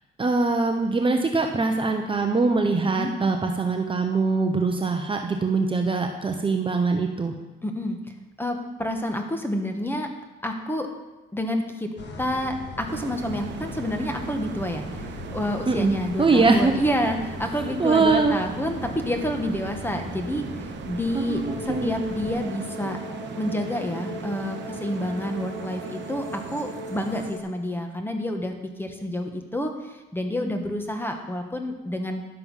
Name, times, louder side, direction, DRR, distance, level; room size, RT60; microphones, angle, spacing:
voice 1, 0.2-7.3 15.7-15.9 16.2-16.7 17.8-18.4 21.1-21.9, right 3 dB, 25° right, 4 dB, 0.8 m, -22 dB
voice 2, 7.6-8.0 8.4-10.1 10.4-10.9 11.3-23.0 23.4-28.5 28.8-32.3, left 1 dB, 10° left, 4 dB, 1.4 m, -29 dB
sound 1, 12.0-22.4, left 2 dB, 65° left, 1.9 m, -39 dB
sound 2, 12.9-27.3, right 7 dB, 65° right, 0.9 m, -38 dB
sound 3, 21.5-27.4, left 2 dB, 35° left, 1.9 m, -38 dB
11.0 x 6.9 x 5.5 m, 1.1 s
cardioid pair, 90°, 20 cm